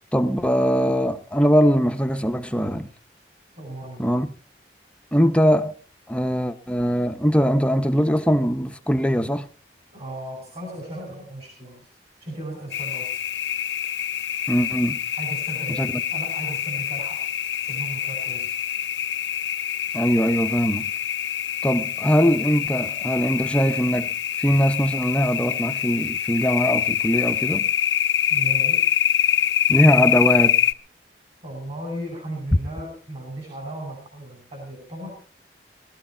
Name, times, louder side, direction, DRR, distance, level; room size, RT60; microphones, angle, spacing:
voice 1, 0.1-2.9 4.0-4.3 5.1-5.7 6.1-9.5 14.5-15.0 15.7-16.0 19.9-20.9 21.6-27.7 29.7-30.6, equal, 5° left, 0.6 m, -21 dB
voice 2, 3.6-4.1 9.9-11.9 12.2-13.2 15.2-18.5 28.3-28.8 31.4-35.2, right 1 dB, 35° right, 5.0 m, -36 dB
sound 1, 12.7-30.7, left 9 dB, 85° left, 0.7 m, -25 dB
20.0 x 12.5 x 4.4 m
head